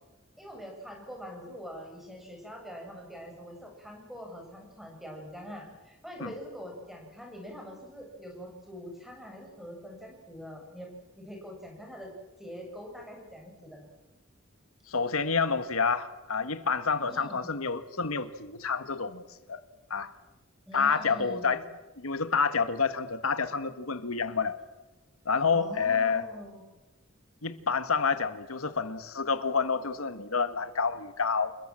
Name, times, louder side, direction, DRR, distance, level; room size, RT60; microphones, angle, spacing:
voice 1, 0.4-10.9 11.2-12.1 12.4-13.9 17.1-17.5 20.7-21.6 25.5-26.6, equal, ahead, 7.6 m, -44 dB
voice 2, 14.9-19.2 19.5-19.6 19.9-20.1 20.7-21.6 22.0-24.6 25.2-26.2 27.4-31.5, left 5 dB, 90° left, 1.5 m, -28 dB
28.5 x 21.5 x 7.5 m
head